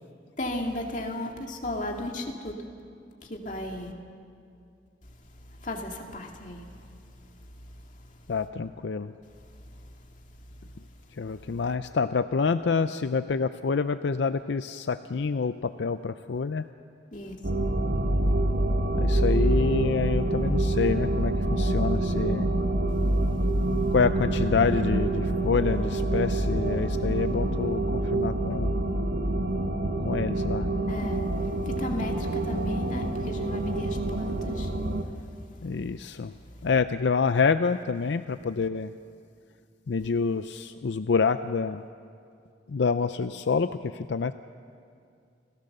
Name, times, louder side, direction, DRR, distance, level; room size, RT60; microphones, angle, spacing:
voice 1, 0.4-2.6 3.2-3.9 5.5-6.9 7.2-7.3 8.0-8.2 9.7-9.9 17.1-17.7 30.9-34.9, left 1 dB, 45° left, 1 dB, 2.2 m, -35 dB
voice 2, 8.3-9.1 11.2-16.6 19.0-22.5 23.9-28.7 30.0-30.7 35.6-36.3 36.6-38.9 39.9-41.8 42.7-44.3, left 5 dB, 75° left, 11 dB, 0.5 m, -27 dB
sound 1, 17.4-35.0, right 1 dB, 70° right, 1.4 m, -26 dB
29.5 x 16.5 x 6.7 m, 2.4 s
head